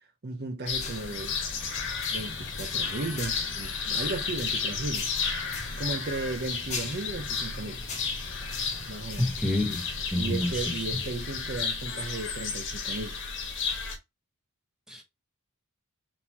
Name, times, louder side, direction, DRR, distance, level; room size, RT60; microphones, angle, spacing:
voice 1, 0.0-1.4 2.1-5.1 5.8-7.8 8.9-9.3 10.2-13.2, right 3 dB, 45° right, 0.7 m, -35 dB
sound 1, 0.7-14.0, left 5 dB, 55° left, 1.2 m, -33 dB
sound 2, 0.8-11.6, left 3 dB, 30° left, 1.4 m, -42 dB
voice 2, 9.2-11.0 14.9-15.0, left 1 dB, 5° right, 1.2 m, -29 dB
4.2 x 3.9 x 2.8 m
head